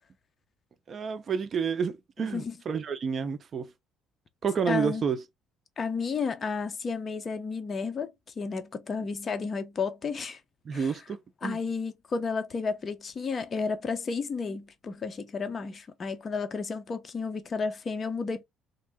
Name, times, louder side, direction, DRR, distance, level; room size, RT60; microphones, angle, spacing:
voice 1, 0.9-3.7 4.4-5.2 10.6-11.6, right 6 dB, 40° right, 0.6 m, -30 dB
voice 2, 2.2-2.5 4.7-5.0 5.8-10.4 10.7-10.9 11.4-18.4, left 5 dB, 30° left, 0.8 m, -32 dB
3.5 x 2.6 x 3.5 m
cardioid pair, 135°, 0 cm